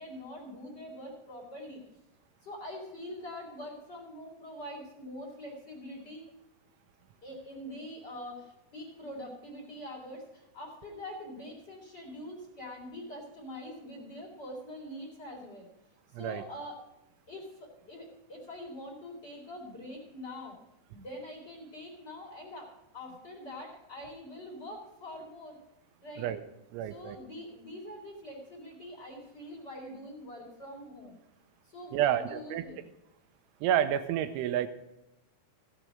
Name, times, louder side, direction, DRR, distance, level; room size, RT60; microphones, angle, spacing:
voice 1, 0.0-1.8 2.4-6.2 7.2-15.7 16.1-16.8 17.3-20.6 20.9-25.6 26.0-26.3 26.9-31.2 31.6-32.9, left 1 dB, 25° left, -1 dB, 3.1 m, -44 dB
voice 2, 26.7-27.2 31.9-32.6 33.6-34.7, right 10 dB, 85° right, 10 dB, 3.2 m, -29 dB
16.5 x 7.4 x 5.0 m, 0.90 s
omnidirectional pair, 5.5 m